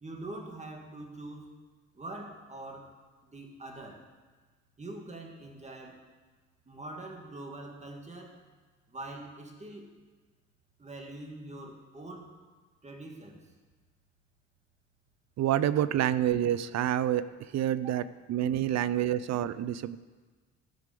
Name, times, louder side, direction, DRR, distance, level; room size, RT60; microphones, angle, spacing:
voice 1, 0.0-1.6 2.0-3.0 3.2-4.1 4.8-6.1 6.7-8.4 8.9-9.9 10.8-12.4 12.8-13.5 17.8-17.9, right 2 dB, 25° right, 2 dB, 2.0 m, -44 dB
voice 2, 15.4-17.3 17.5-20.0, right 11 dB, 60° right, 16 dB, 0.5 m, -28 dB
15.0 x 4.9 x 6.8 m, 1.4 s
cardioid pair, 90°, 30 cm